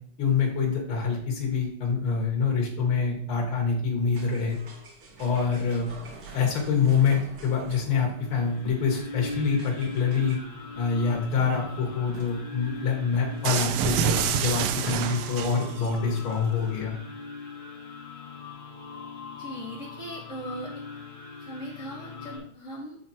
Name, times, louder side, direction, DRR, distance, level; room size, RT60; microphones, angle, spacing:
voice 1, 0.2-4.6 5.2-5.9 6.3-10.4 10.8-16.9, left 5 dB, 75° left, 0 dB, 2.4 m, -26 dB
sound 1, 4.1-13.7, right 3 dB, 50° right, 1.5 m, -48 dB
sound 2, 8.1-22.4, left 4 dB, 55° left, 2.2 m, -41 dB
sound 3, 13.4-15.9, right 9 dB, 80° right, 1.5 m, -27 dB
voice 2, 19.4-20.8 21.4-23.0, equal, 35° left, -5 dB, 2.7 m, -39 dB
8.9 x 3.6 x 4.3 m, 0.66 s
omnidirectional pair, 2.4 m